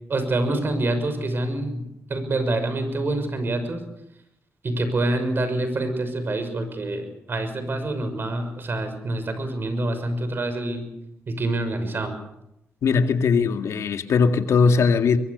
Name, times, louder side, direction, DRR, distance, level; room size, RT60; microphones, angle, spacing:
voice 1, 0.1-1.8 2.1-3.8 4.6-10.8 11.3-12.1, right 2 dB, 45° right, 6.3 m, -26 dB
voice 2, 12.8-15.2, left 5 dB, 75° left, 2.1 m, -19 dB
23.5 x 22.5 x 6.9 m
cardioid pair, 90°, 5 cm